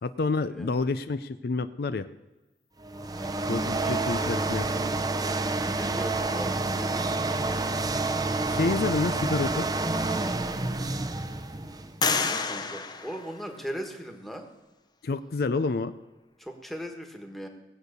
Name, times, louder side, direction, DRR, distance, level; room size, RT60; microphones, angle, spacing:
voice 1, 0.0-2.1 3.5-4.9 8.4-9.7 15.0-15.9, left 3 dB, 60° left, 11 dB, 0.5 m, -28 dB
sound 1, 2.8-12.0, right 2 dB, 20° right, 0.7 m, -28 dB
voice 2, 3.6-4.3 5.7-8.5 12.0-14.5 16.4-17.5, equal, ahead, 3 dB, 1.5 m, -40 dB
sound 2, 10.7-11.1 12.0-14.0, left 4 dB, 25° left, 0.9 m, -30 dB
18.0 x 8.1 x 6.7 m, 1.1 s
head